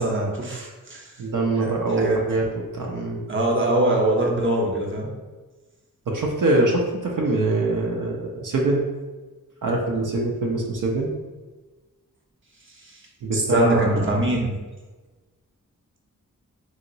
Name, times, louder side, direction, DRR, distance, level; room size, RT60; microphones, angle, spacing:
voice 1, 0.0-1.0 1.6-2.2 3.3-5.1 13.3-14.6, right 1 dB, 35° right, -1 dB, 0.8 m, -22 dB
voice 2, 1.2-3.2 6.1-8.8 9.6-11.1 13.2-14.1, right 2 dB, 65° right, -1 dB, 0.6 m, -24 dB
2.9 x 2.7 x 2.6 m, 1.3 s
cardioid pair, 55°, 34 cm